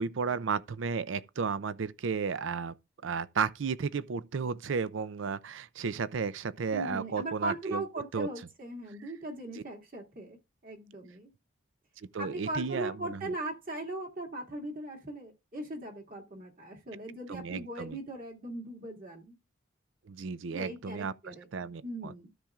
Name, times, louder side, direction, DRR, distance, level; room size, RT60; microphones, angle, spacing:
voice 1, 0.0-2.7 3.0-7.8 8.1-8.3 9.5-9.6 12.1-13.3 17.3-18.0 20.1-22.1, right 5 dB, 70° right, 0.4 m, -33 dB
voice 2, 6.7-11.3 12.2-19.4 20.5-21.5 21.8-22.3, right 1 dB, 45° right, 2.1 m, -39 dB
13.0 x 7.2 x 2.4 m
head